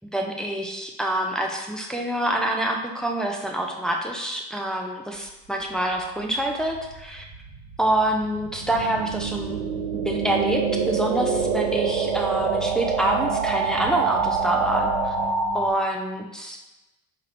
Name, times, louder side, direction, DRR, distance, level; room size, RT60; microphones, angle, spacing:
voice 1, 0.0-7.2 7.8-9.6 9.9-15.1 15.5-16.6, right 1 dB, ahead, 1 dB, 0.6 m, -26 dB
sound 1, 6.4-15.7, right 5 dB, 65° right, 1.4 m, -26 dB
4.9 x 2.9 x 3.3 m, 1.0 s
hypercardioid pair, 60°, 44 cm